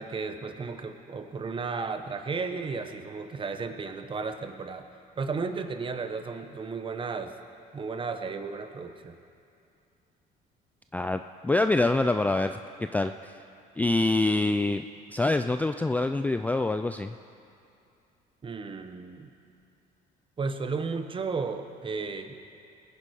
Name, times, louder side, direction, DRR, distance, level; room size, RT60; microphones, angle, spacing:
voice 1, 0.0-4.9 5.2-7.3 7.7-9.2 18.4-19.3 20.4-22.4, right 4 dB, 30° right, 7 dB, 1.1 m, -34 dB
voice 2, 10.9-13.3 13.8-14.8 15.1-17.2, left 2 dB, 10° left, 8 dB, 0.3 m, -26 dB
20.5 x 10.0 x 4.8 m, 2.6 s
cardioid pair, 110°, 17 cm